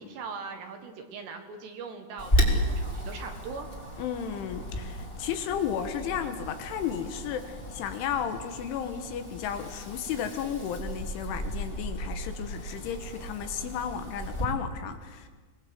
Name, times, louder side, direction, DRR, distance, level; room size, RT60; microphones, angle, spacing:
voice 1, 0.0-3.7, right 5 dB, 65° right, 5 dB, 3.3 m, -40 dB
Wind, 2.2-14.4, equal, 10° left, 3.0 m, -33 dB
voice 2, 4.0-15.3, left 8 dB, 75° left, 8 dB, 3.6 m, -33 dB
25.5 x 19.5 x 7.8 m, 1.4 s
omnidirectional pair, 6.0 m